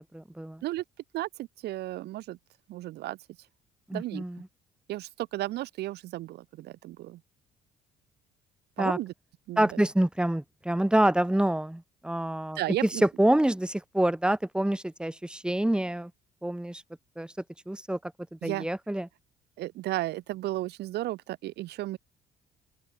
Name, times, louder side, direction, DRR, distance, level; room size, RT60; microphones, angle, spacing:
voice 1, 0.1-0.6 3.9-4.4 8.8-9.0 9.6-16.1 16.4-16.8 17.2-17.3 17.7-18.1 18.4-19.1, right 1 dB, 5° right, 4.9 m, -27 dB
voice 2, 1.1-2.4 2.7-3.2 3.9-4.2 4.9-7.2 8.8-9.1 9.5-9.8 12.5-13.0 18.4-18.7 19.6-22.0, right 16 dB, 80° right, 2.6 m, -34 dB
open air
cardioid pair, 110°, 17 cm